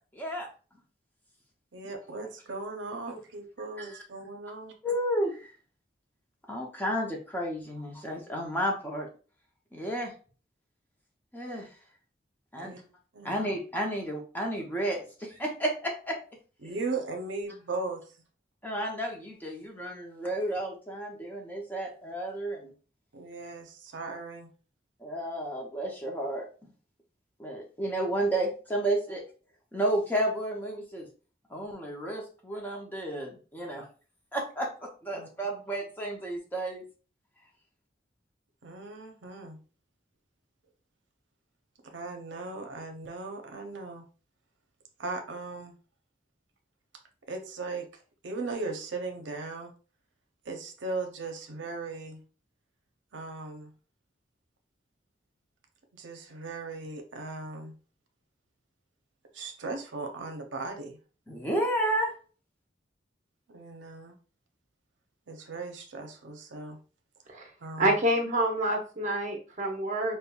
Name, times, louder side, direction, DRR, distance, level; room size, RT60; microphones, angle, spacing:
voice 1, 0.1-0.5 3.8-3.9 4.8-5.5 6.5-9.1 9.7-10.1 11.3-11.7 12.5-12.7 13.2-16.2 18.6-22.7 25.0-26.5 27.4-29.2 29.7-31.1 31.5-33.8 34.3-36.8 61.3-62.1, right 1 dB, 10° left, 0 dB, 0.6 m, -32 dB
voice 2, 1.7-4.7 12.6-12.8 13.1-13.3 16.6-18.0 23.1-24.5 35.1-35.6 38.6-39.6 41.8-44.0 45.0-45.7 47.3-47.9 48.2-49.7 50.4-52.2 53.1-53.7 55.9-57.7 59.3-61.0 63.5-64.1 65.3-66.8 67.6-67.9, right 3 dB, 80° right, 4 dB, 0.6 m, -38 dB
voice 3, 67.8-70.2, right 1 dB, 40° right, 1 dB, 0.8 m, -27 dB
5.2 x 2.1 x 2.3 m, 0.38 s
head